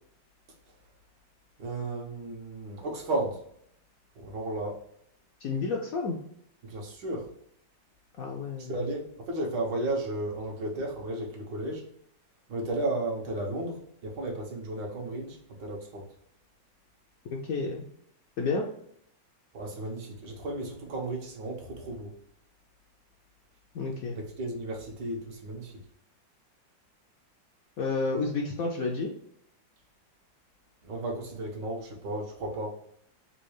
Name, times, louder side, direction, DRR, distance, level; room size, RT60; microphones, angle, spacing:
voice 1, 1.6-3.4 4.1-4.8 6.6-7.3 8.6-11.8 12.5-16.1 19.5-22.1 24.1-25.8 30.8-32.7, right 2 dB, 75° right, -1 dB, 1.6 m, -34 dB
voice 2, 5.4-6.2 8.2-8.8 17.3-17.8 18.4-18.7 23.7-24.1 27.8-29.1, left 3 dB, 70° left, 0 dB, 0.8 m, -30 dB
4.3 x 2.3 x 3.0 m, 0.68 s
omnidirectional pair, 2.0 m